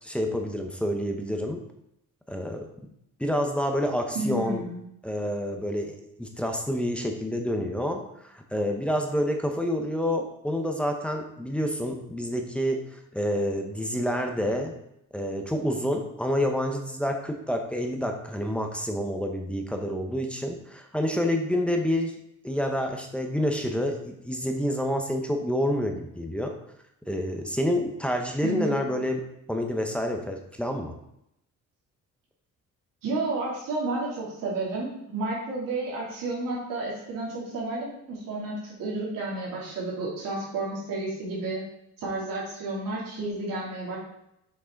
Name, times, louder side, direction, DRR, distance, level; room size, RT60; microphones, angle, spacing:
voice 1, 0.0-1.6 2.3-2.7 3.2-4.6 5.0-14.7 15.1-22.1 22.4-26.5 27.1-29.2 29.5-30.9, equal, 5° left, 3 dB, 0.7 m, -28 dB
voice 2, 4.1-4.8 28.4-28.8 33.0-41.6 42.0-44.0, right 2 dB, 85° right, -6 dB, 2.8 m, -31 dB
6.4 x 6.0 x 4.5 m, 0.78 s
cardioid pair, 170°, 32 cm